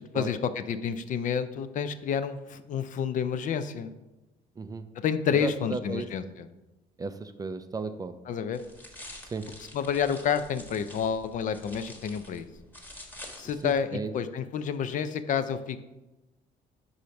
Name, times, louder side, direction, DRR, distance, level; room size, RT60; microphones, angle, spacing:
voice 1, 0.1-3.9 5.0-6.2 8.3-8.6 9.7-12.5 13.4-15.8, left 7 dB, 50° left, 11 dB, 0.5 m, -29 dB
voice 2, 4.6-4.9 5.3-6.1 7.0-8.2 9.3-9.5 13.6-14.1, right 4 dB, 20° right, 10 dB, 0.4 m, -35 dB
sound 1, 8.5-13.8, left 1 dB, 10° left, 1.3 m, -47 dB
4.9 x 4.0 x 5.7 m, 1.0 s
cardioid pair, 110°, 17 cm